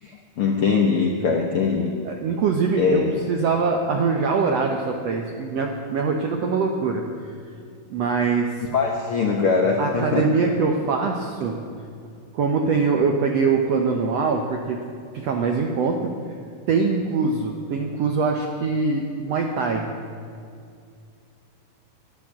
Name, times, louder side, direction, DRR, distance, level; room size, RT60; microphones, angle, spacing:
voice 1, 0.0-2.0 2.8-3.2 8.7-10.2, left 5 dB, 70° left, 1 dB, 1.3 m, -22 dB
voice 2, 2.0-7.3 7.9-8.5 9.8-11.6 12.3-14.8 15.1-16.1 16.7-19.9, right 4 dB, 75° right, 3 dB, 1.5 m, -23 dB
12.0 x 11.5 x 8.6 m, 2.3 s
omnidirectional pair, 4.1 m